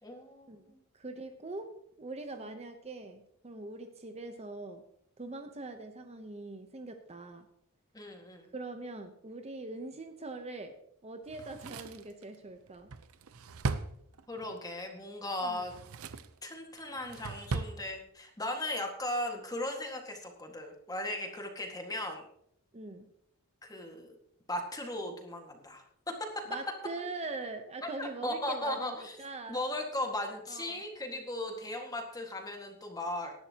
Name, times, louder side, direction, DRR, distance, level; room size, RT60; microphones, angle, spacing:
voice 1, 0.0-0.8 7.9-8.5 14.3-15.7 16.4-22.3 23.6-24.2 24.5-26.4 27.8-29.2 29.5-33.3, left 1 dB, 15° left, 3 dB, 1.8 m, -37 dB
voice 2, 0.9-1.7 2.0-4.8 5.2-7.5 8.5-10.7 11.0-12.9 15.4-15.6 22.7-23.1 26.5-29.6 30.5-30.8, right 3 dB, 30° right, 7 dB, 0.9 m, -42 dB
Drawer open or close, 11.3-14.6 15.5-16.4 16.8-17.8 18.1-18.2, right 4 dB, 70° right, 0.7 m, -38 dB
18.5 x 11.0 x 2.9 m, 0.72 s
head